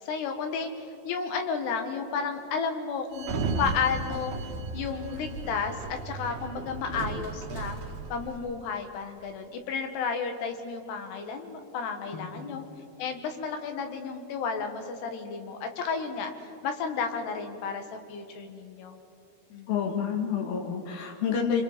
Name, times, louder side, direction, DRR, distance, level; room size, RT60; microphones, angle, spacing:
voice 1, 0.0-4.3 4.7-7.8 8.1-12.6 13.0-16.3 16.6-19.0 19.5-19.7, left 5 dB, 85° left, 5 dB, 3.7 m, -32 dB
Sliding door, 3.1-8.4, right 3 dB, 80° right, 3.9 m, -35 dB
voice 2, 12.1-12.5 19.7-21.6, left 7 dB, 65° left, 2 dB, 4.0 m, -29 dB
26.5 x 26.0 x 5.1 m, 2.8 s
omnidirectional pair, 4.6 m